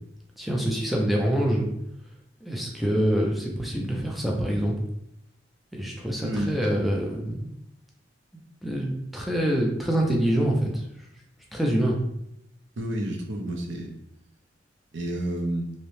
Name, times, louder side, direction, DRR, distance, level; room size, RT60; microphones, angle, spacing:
voice 1, 0.4-1.7 2.4-4.7 5.7-7.5 8.6-10.8 11.5-12.0, right 1 dB, ahead, -2 dB, 0.4 m, -25 dB
voice 2, 6.2-6.5 12.8-13.9 14.9-15.7, right 1 dB, 80° right, 2 dB, 0.5 m, -30 dB
2.7 x 2.0 x 3.0 m, 0.76 s
head